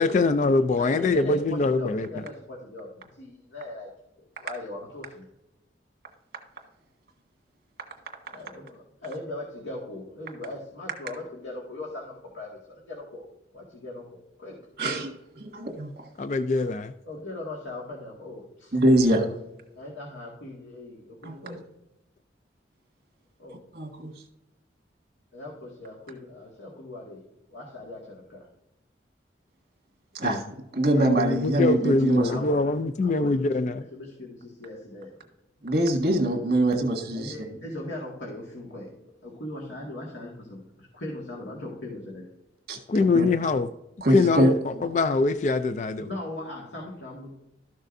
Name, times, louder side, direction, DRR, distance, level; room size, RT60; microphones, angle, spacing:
voice 1, 0.0-2.1 16.2-16.9 30.2-30.3 30.9-33.8 42.9-43.7 44.1-44.6 44.9-46.1, left 3 dB, 40° left, 0.3 m, -23 dB
voice 2, 0.8-3.9 4.2-5.3 8.3-13.3 13.5-14.6 17.0-18.8 19.8-21.6 23.4-23.6 25.3-27.2 27.5-28.5 32.2-32.7 33.0-35.1 37.1-38.9 39.2-42.3 46.0-47.4, left 2 dB, 90° left, 1.9 m, -39 dB
voice 3, 14.8-16.1 18.7-19.3 21.2-21.6 23.7-24.1 30.1-30.4 30.7-32.4 35.6-37.3 42.7-42.8 43.1-43.3 44.0-44.5, right 1 dB, 55° right, 1.8 m, -24 dB
13.0 x 6.5 x 2.6 m
head